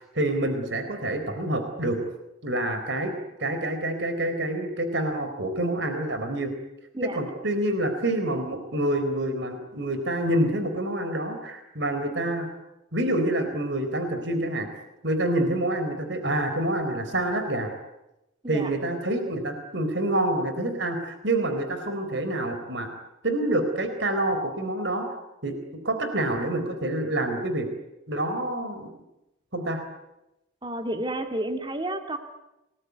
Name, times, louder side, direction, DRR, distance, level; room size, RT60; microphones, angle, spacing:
voice 1, 0.0-2.0 2.4-3.1 3.4-6.5 7.0-12.5 12.9-14.7 15.0-17.7 18.5-22.9 23.2-25.1 25.4-25.5 25.8-27.7 28.1-28.9 29.5-29.8, right 1 dB, 60° right, 7 dB, 4.2 m, -27 dB
voice 2, 30.6-32.2, right 1 dB, 20° right, 6 dB, 2.8 m, -30 dB
28.5 x 20.5 x 9.5 m, 0.93 s
head